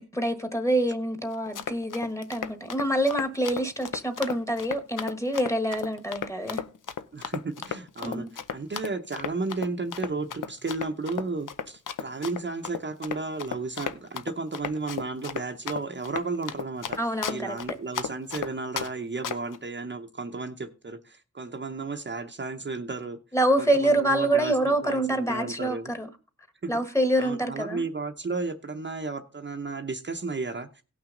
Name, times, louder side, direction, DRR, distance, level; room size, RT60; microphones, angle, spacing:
voice 1, 0.0-6.6 8.0-8.3 17.0-17.6 23.3-26.1 26.7-27.8, right 1 dB, 10° left, 1.3 m, -26 dB
Run, 1.3-18.9 19.2-19.6, left 8 dB, 85° left, 0.7 m, -34 dB
voice 2, 7.1-17.0 17.3-23.2 23.6-25.9 26.6-26.7 27.2-30.8, right 3 dB, 35° right, 0.8 m, -33 dB
17.5 x 6.0 x 3.8 m
wide cardioid pair, 105°, 31 cm